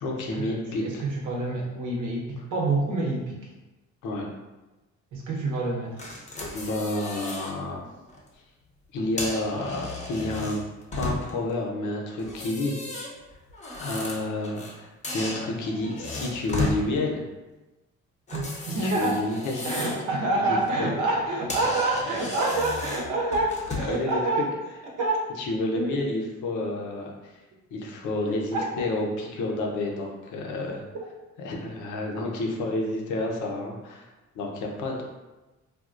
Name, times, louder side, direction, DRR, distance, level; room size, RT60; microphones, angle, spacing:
voice 1, 0.0-1.0 4.0-4.3 6.5-7.9 8.9-10.6 11.0-12.8 13.7-17.3 18.6-19.7 20.5-20.9 21.4-21.5 23.9-24.2 25.4-27.3 27.7-30.8 31.4-34.1 34.3-35.0, left 2 dB, 80° left, 0 dB, 0.7 m, -30 dB
voice 2, 0.8-3.4 5.1-6.1 18.3-19.2 19.6-24.5 25.0-25.3 25.7-25.9 28.5-28.9, right 2 dB, 85° right, -2 dB, 0.8 m, -27 dB
sound 1, 6.0-7.5 8.0-8.2 9.0-11.5 12.2-14.8 15.0-16.8 18.3-20.1 20.5-20.7 21.2-21.3 21.5-24.0, left 2 dB, 25° left, 0.6 m, -34 dB
3.4 x 2.2 x 2.5 m, 1.1 s
cardioid pair, 90°, 30 cm